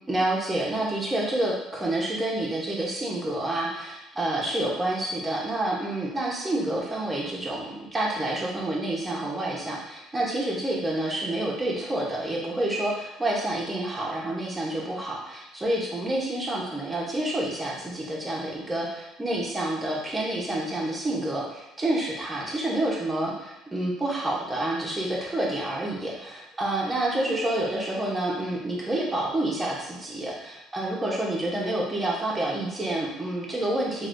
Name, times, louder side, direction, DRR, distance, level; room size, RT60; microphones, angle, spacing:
voice 1, 0.1-34.1, right 1 dB, 10° right, -4 dB, 1.0 m, -28 dB
6.0 x 2.7 x 2.6 m, 0.94 s
cardioid pair, 135°, 0 cm